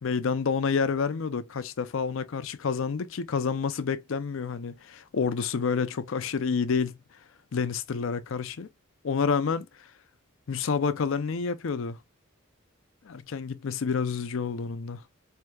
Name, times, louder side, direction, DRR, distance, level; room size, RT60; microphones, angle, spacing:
voice 1, 0.0-7.0 7.5-8.7 9.0-9.7 10.5-12.0 13.0-15.0, left 5 dB, 70° left, 0.5 m, -29 dB
4.5 x 2.7 x 2.2 m
head